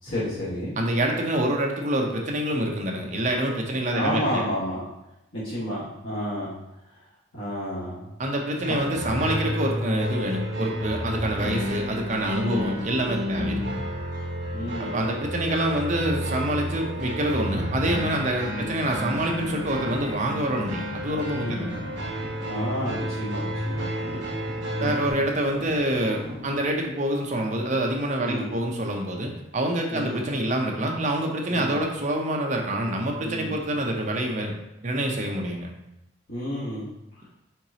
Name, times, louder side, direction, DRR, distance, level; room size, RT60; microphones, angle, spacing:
voice 1, 0.0-0.8 3.9-4.8 5.3-6.5 6.9-7.0 7.3-8.1 8.6-8.8 12.4-12.7 13.4-13.6 14.5-15.0 18.6-18.8 21.3-21.7 22.4-23.8 24.7-25.0 28.2-28.5 29.9-30.2 31.5-31.8 33.2-33.6 36.3-36.9, equal, 85° left, -10 dB, 1.4 m, -31 dB
voice 2, 0.8-4.5 8.2-13.6 14.9-21.8 24.1-24.2 24.8-34.5 34.8-35.7, right 1 dB, 35° right, 1 dB, 0.6 m, -26 dB
sound 1, 8.6-25.1, equal, 60° right, 1.1 m, -31 dB
sound 2, 19.8-26.8, left 1 dB, 60° left, 1.3 m, -44 dB
4.5 x 3.8 x 2.8 m, 0.88 s
head